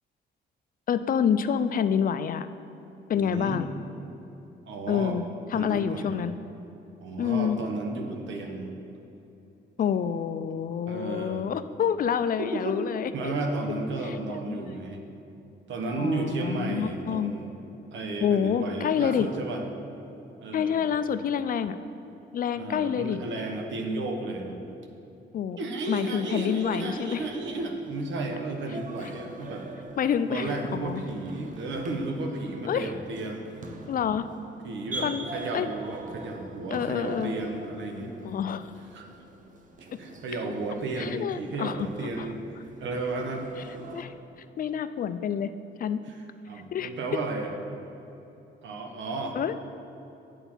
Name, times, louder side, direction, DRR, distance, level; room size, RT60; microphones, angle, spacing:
voice 1, 0.9-2.5 3.1-3.7 4.9-5.3 5.5-6.3 7.2-7.6 9.8-13.3 14.0-14.8 16.0-17.3 18.2-19.3 20.5-21.8 22.3-23.2 25.3-25.6 25.9-27.2 29.0-29.1 30.0-31.1 32.7-32.9 33.9-34.3 35.0-35.2 35.5-35.7 36.7-37.3 38.2-38.7 41.0-42.3 43.9-44.1 44.6-45.5 45.8-46.0 46.7-46.9 49.3-49.5, left 8 dB, 45° left, 12 dB, 0.4 m, -28 dB
voice 2, 3.1-3.6 4.7-5.2 5.5-6.2 7.0-8.8 10.9-11.5 12.4-12.8 13.1-15.0 15.7-17.5 17.9-19.6 20.4-20.9 22.6-24.6 25.6-29.7 30.3-33.4 34.6-38.2 38.9-39.1 39.8-43.5 46.1-47.5 48.6-49.4, right 2 dB, 70° right, 3 dB, 1.2 m, -33 dB
sound 1, 26.4-44.0, right 2 dB, 40° right, 0.9 m, -44 dB
8.0 x 7.5 x 4.5 m, 2.9 s
cardioid pair, 90°, 20 cm